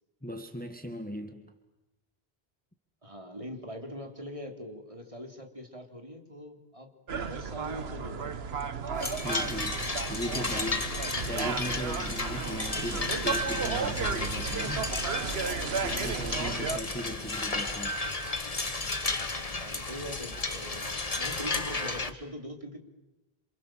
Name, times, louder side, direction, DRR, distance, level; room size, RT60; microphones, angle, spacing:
voice 1, 0.2-1.5 9.2-15.0 15.8-18.0, equal, 10° left, 6 dB, 1.7 m, -38 dB
voice 2, 3.0-8.7 11.0-11.1 13.1-13.4 16.8-17.2 17.5-17.6 19.5-22.8, equal, 30° right, 5 dB, 3.1 m, -43 dB
sound 1, 7.1-16.8, right 5 dB, 70° right, 1.4 m, -34 dB
sound 2, 9.0-22.1, left 3 dB, 35° left, 1.5 m, -33 dB
28.0 x 28.0 x 7.5 m, 1.0 s
omnidirectional pair, 1.1 m